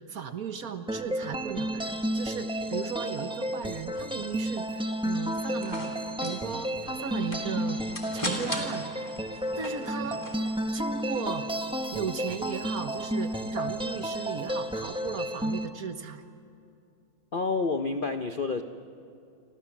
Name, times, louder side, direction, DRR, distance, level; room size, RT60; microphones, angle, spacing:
voice 1, 0.0-7.8 8.1-8.9 9.6-10.2 10.7-11.5 11.9-16.2, right 6 dB, 55° right, 9 dB, 1.5 m, -36 dB
sound 1, 0.9-15.7, equal, 5° right, 0.7 m, -32 dB
sound 2, 5.3-10.5, left 1 dB, 15° left, 3.2 m, -39 dB
voice 2, 17.3-18.6, left 4 dB, 55° left, 7 dB, 0.5 m, -28 dB
29.0 x 25.5 x 7.3 m, 2.4 s
omnidirectional pair, 2.1 m